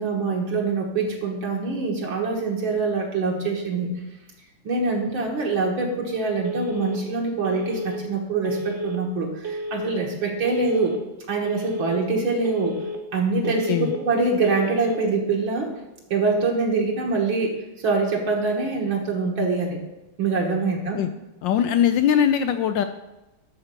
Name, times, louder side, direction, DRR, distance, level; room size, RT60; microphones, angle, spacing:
voice 1, 0.0-3.9 4.6-11.0 11.3-12.8 13.1-15.7 16.1-17.5 17.8-19.8 20.2-21.0, right 3 dB, 65° right, -1 dB, 2.1 m, -24 dB
Telephone, 6.4-7.0 7.4-8.0 8.4-9.0 9.4-10.0 10.4-11.0 11.4-12.0 12.4-13.0 13.4-14.0 14.4-15.0, equal, 40° right, 1.2 m, -31 dB
voice 2, 13.4-13.9 21.0-21.1 21.4-22.8, left 9 dB, 75° left, 9 dB, 1.1 m, -21 dB
11.5 x 4.4 x 6.8 m, 0.98 s
omnidirectional pair, 2.4 m